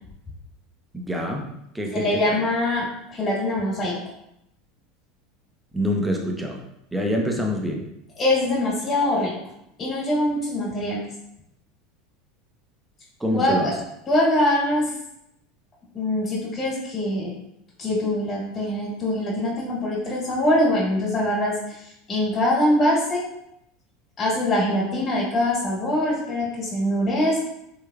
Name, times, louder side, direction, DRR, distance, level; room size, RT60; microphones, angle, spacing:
voice 1, 0.9-1.5 1.7-2.4 5.7-6.6 6.9-7.8 13.2-13.7, equal, 5° right, 1 dB, 0.6 m, -25 dB
voice 2, 1.9-4.0 8.2-9.3 9.8-11.0 13.3-13.6 14.1-14.9 15.9-17.3 17.8-23.3 24.2-27.5, left 1 dB, 30° left, -5 dB, 1.5 m, -23 dB
3.4 x 3.2 x 2.3 m, 0.80 s
supercardioid pair, 125°, 0 cm